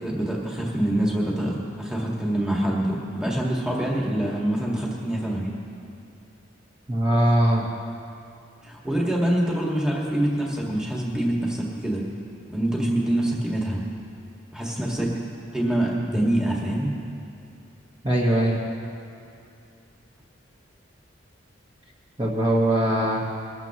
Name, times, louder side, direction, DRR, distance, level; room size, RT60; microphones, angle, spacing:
voice 1, 0.0-5.5 8.6-12.0 12.5-13.8 14.5-15.1 15.5-16.9, right 1 dB, 5° right, -4 dB, 1.7 m, -25 dB
voice 2, 6.9-7.7 18.0-18.6 22.2-23.2, right 1 dB, 25° right, -5 dB, 1.3 m, -21 dB
22.0 x 13.0 x 3.0 m, 2.5 s
head